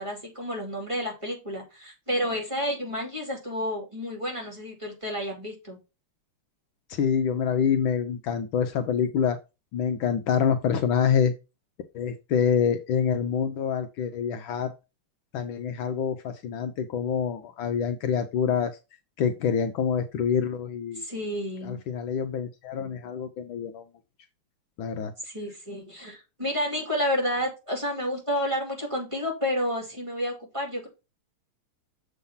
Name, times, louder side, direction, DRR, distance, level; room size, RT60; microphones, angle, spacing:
voice 1, 0.0-5.8 20.9-21.8 25.2-30.9, equal, 15° right, 0 dB, 2.3 m, -30 dB
voice 2, 6.9-9.4 9.7-11.3 11.9-14.7 15.3-18.8 19.2-21.0 21.6-23.8 24.8-25.1, left 7 dB, 70° left, 8 dB, 1.4 m, -26 dB
7.0 x 3.9 x 5.4 m, 0.27 s
omnidirectional pair, 2.4 m